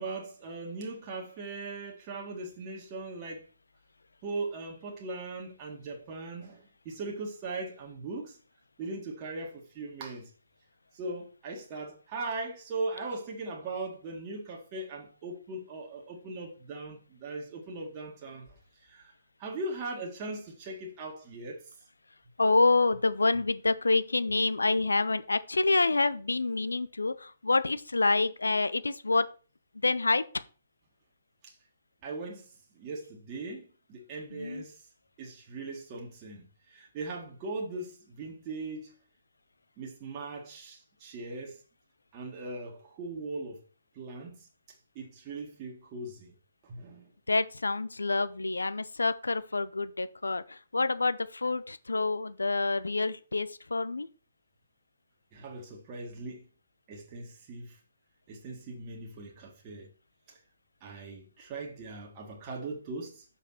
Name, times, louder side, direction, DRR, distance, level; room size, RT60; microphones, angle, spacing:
voice 1, 0.0-3.5 4.2-8.4 8.8-10.3 10.9-18.5 18.8-19.1 19.4-21.7 31.4-31.5 32.0-32.5 32.7-34.9 35.2-38.9 39.8-41.6 42.1-43.6 43.9-44.5 45.0-46.3 46.6-47.1 55.3-56.4 56.9-57.8 58.3-59.9 60.3-60.4 60.8-63.3, right 3 dB, 30° right, 1.8 m, -39 dB
voice 2, 22.4-29.3 29.8-30.3 34.3-34.6 47.3-54.1, left 3 dB, 75° left, 0.6 m, -27 dB
6.8 x 5.8 x 4.3 m
figure-of-eight pair, 130°, 0 cm